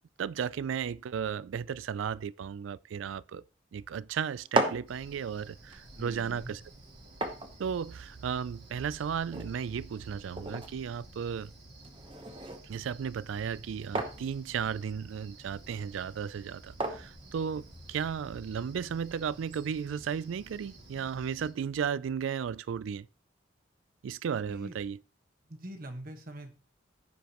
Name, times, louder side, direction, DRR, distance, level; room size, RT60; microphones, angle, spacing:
voice 1, 0.2-3.4 3.7-6.6 7.6-11.5 12.6-23.1 24.0-25.0, right 7 dB, 85° right, 0.3 m, -34 dB
sound 1, 4.3-18.2, right 2 dB, 25° right, 0.9 m, -39 dB
Cricket, 4.9-21.5, right 1 dB, 60° right, 2.5 m, -52 dB
voice 2, 6.0-6.5 24.5-24.8 25.5-26.5, right 1 dB, 45° right, 1.3 m, -43 dB
15.0 x 5.1 x 3.0 m
head